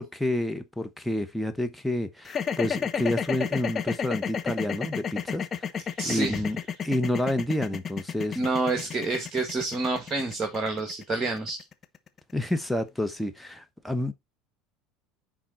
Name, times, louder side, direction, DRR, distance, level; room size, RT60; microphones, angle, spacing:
voice 1, 0.0-5.7 6.0-6.6 6.8-8.4 12.3-14.1, left 1 dB, ahead, 1.0 m, -29 dB
sound 1, 2.2-12.4, left 7 dB, 35° left, 1.1 m, -31 dB
voice 2, 5.9-6.5 8.4-11.6, right 3 dB, 25° right, 1.9 m, -28 dB
9.9 x 3.7 x 4.2 m
hypercardioid pair, 70°, 0 cm